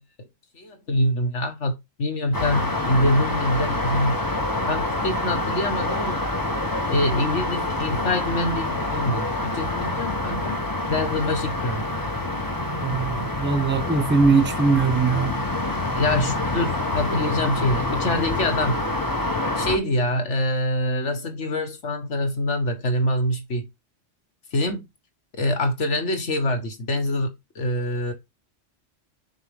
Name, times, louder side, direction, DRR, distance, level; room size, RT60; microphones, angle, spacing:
voice 1, 0.5-4.2 4.7-6.3 6.9-10.6 10.9-11.8 16.0-18.8 19.6-23.7 24.5-24.9 25.3-28.1, left 1 dB, 70° left, 1.9 m, -25 dB
sound 1, 2.3-19.8, left 2 dB, 15° left, 1.2 m, -26 dB
voice 2, 12.8-15.5, right 4 dB, 10° right, 1.0 m, -21 dB
6.5 x 5.4 x 3.6 m
omnidirectional pair, 1.3 m